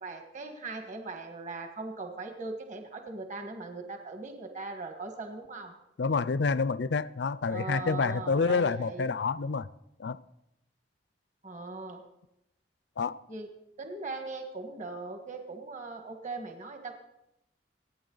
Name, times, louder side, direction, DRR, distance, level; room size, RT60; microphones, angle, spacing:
voice 1, 0.0-5.7 7.5-9.1 11.4-12.0 13.3-13.5 13.8-16.9, right 3 dB, 45° right, 1.6 m, -39 dB
voice 2, 6.0-9.7 10.0-10.2 13.0-13.2, left 4 dB, 70° left, 0.5 m, -28 dB
27.0 x 9.2 x 3.9 m
head